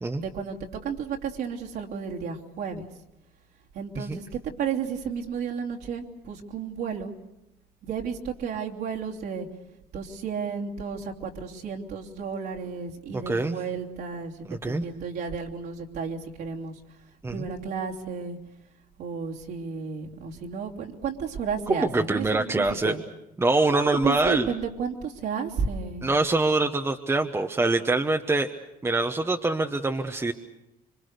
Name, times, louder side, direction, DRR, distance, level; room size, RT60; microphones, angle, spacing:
voice 1, 0.2-2.9 3.7-7.1 7.8-9.5 9.9-16.8 17.3-18.4 19.0-23.0 23.7-26.1 29.9-30.1, right 6 dB, 70° right, -1 dB, 3.0 m, -32 dB
voice 2, 13.3-13.6 14.5-14.8 17.2-17.5 21.7-22.9 23.4-24.5 26.0-28.5 28.8-30.3, right 2 dB, 15° right, 4 dB, 1.0 m, -24 dB
26.5 x 24.5 x 6.6 m, 0.91 s
cardioid pair, 110°, 17 cm